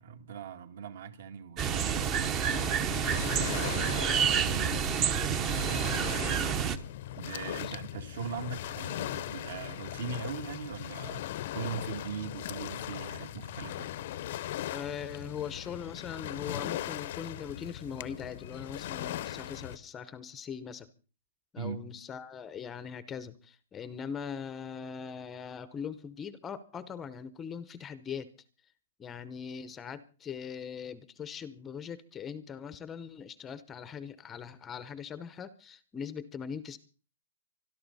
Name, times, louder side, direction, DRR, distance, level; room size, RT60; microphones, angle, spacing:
voice 1, 0.0-6.7 7.2-11.2 11.5-13.9 21.6-21.8, right 6 dB, 60° right, 2.2 m, -41 dB
sound 1, 1.6-6.8, right 7 dB, 20° right, 0.8 m, -29 dB
Waves surf, 2.5-19.8, left 13 dB, 40° left, 0.7 m, -39 dB
voice 2, 14.7-20.9 21.5-28.3 29.0-36.8, left 7 dB, 10° left, 0.7 m, -41 dB
24.5 x 13.0 x 4.1 m
hypercardioid pair, 170°, 0 cm